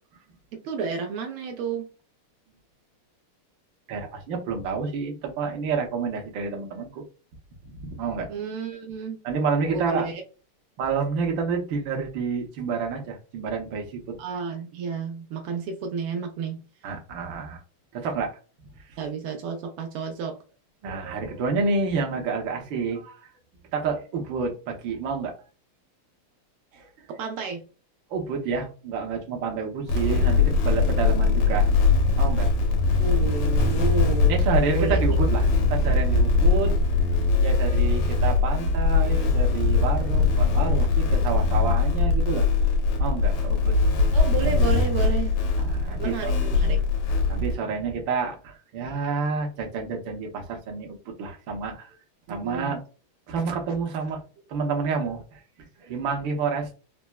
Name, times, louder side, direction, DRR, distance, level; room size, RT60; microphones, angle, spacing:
voice 1, 0.6-1.8 8.3-9.2 9.7-10.2 14.2-16.6 19.0-20.4 27.2-27.6 33.0-34.3 34.7-35.0 44.1-45.3 46.0-46.8 52.3-52.8, right 5 dB, 80° right, 3 dB, 1.5 m, -31 dB
voice 2, 3.9-7.0 7.7-8.3 9.2-10.1 10.8-14.2 16.8-17.6 17.9-18.3 18.7-19.0 20.8-23.3 23.7-25.3 26.7-26.9 28.1-31.7 32.2-32.8 34.2-36.7 37.4-42.4 43.0-43.8 45.6-46.4 47.3-51.9 52.3-52.8 53.3-54.2 54.5-55.4 55.8-56.7, right 5 dB, 65° right, 1 dB, 1.5 m, -29 dB
sound 1, 29.9-47.5, left 4 dB, 90° left, 1.8 m, -21 dB
4.3 x 2.0 x 2.2 m, 0.35 s
omnidirectional pair, 2.4 m